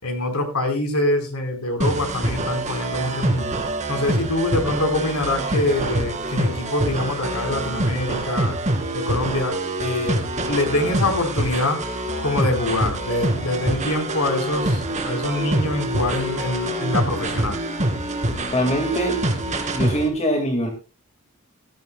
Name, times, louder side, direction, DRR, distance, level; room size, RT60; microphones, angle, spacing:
voice 1, 0.0-3.5 3.9-8.5 8.9-11.8 12.2-17.6, left 1 dB, 75° left, 4 dB, 4.1 m, -25 dB
sound 1, 1.8-20.1, right 1 dB, 30° right, 2.2 m, -25 dB
voice 2, 18.5-19.2 19.7-20.7, equal, 30° left, 4 dB, 1.9 m, -22 dB
17.5 x 14.0 x 2.2 m, 0.33 s
head